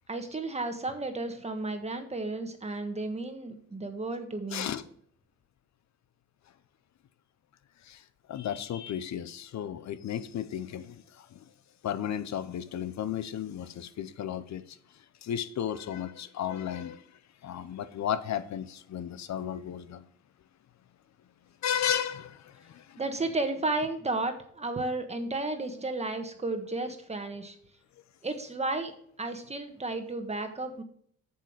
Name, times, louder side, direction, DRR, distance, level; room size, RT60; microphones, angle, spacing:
voice 1, 0.1-4.7 23.0-27.6 28.2-28.9 29.2-30.8, right 2 dB, 20° right, 1.4 m, -33 dB
voice 2, 4.5-4.8 7.8-11.4 11.8-14.8 15.2-20.0 21.6-23.0, left 9 dB, 65° left, 0.7 m, -34 dB
7.6 x 7.0 x 4.7 m
cardioid pair, 105°, 30 cm